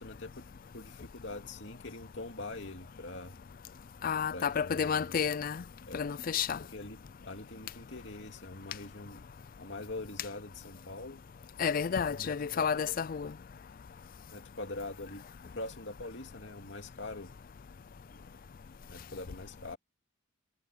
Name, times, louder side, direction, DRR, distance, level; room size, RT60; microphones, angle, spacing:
voice 1, 0.0-3.4 4.3-5.3 5.9-6.1 6.7-9.2 9.6-11.2 11.9-12.7 14.3-15.2 15.5-17.3 18.1-18.4 18.9-19.8, left 2 dB, 60° left, 2.7 m, -44 dB
voice 2, 4.0-5.6 5.9-6.6 11.6-13.3, left 7 dB, 45° left, 0.4 m, -31 dB
head